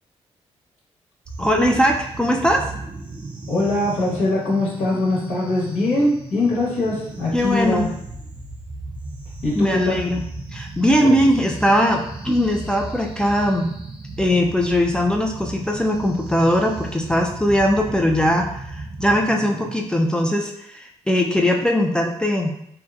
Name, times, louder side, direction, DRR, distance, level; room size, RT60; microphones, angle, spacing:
sound 1, 1.3-19.8, right 2 dB, 45° right, 0.5 m, -36 dB
voice 1, 1.4-2.6 7.3-7.9 9.6-10.2 10.5-13.7 14.2-22.5, equal, 5° left, 0 dB, 0.3 m, -20 dB
voice 2, 3.5-7.9 9.4-10.0 11.0-11.2, left 2 dB, 80° left, -6 dB, 1.1 m, -22 dB
2.7 x 2.1 x 2.4 m, 0.74 s
cardioid pair, 70°, 12 cm